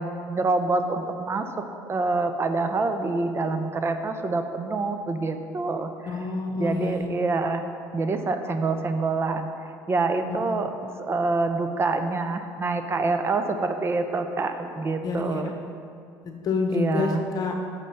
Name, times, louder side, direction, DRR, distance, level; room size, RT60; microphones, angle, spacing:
voice 1, 0.0-6.2 6.6-7.6 7.9-10.7 11.0-15.5 16.7-17.2, right 3 dB, 30° right, 8 dB, 0.6 m, -26 dB
voice 2, 6.1-7.1 15.0-15.4 16.2-17.5, left 3 dB, 45° left, 3 dB, 1.0 m, -27 dB
6.4 x 5.4 x 5.5 m, 2.4 s
supercardioid pair, 95°, 9 cm